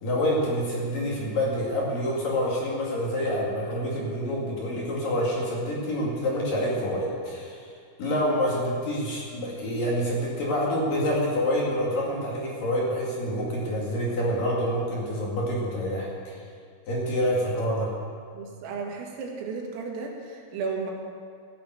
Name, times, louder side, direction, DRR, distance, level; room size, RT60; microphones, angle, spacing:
voice 1, 0.0-7.6 8.0-16.4 16.9-17.9, equal, 50° left, -4 dB, 3.4 m, -27 dB
voice 2, 18.3-20.9, right 4 dB, 90° right, 0 dB, 4.6 m, -34 dB
16.0 x 8.7 x 7.8 m, 2.3 s
omnidirectional pair, 5.8 m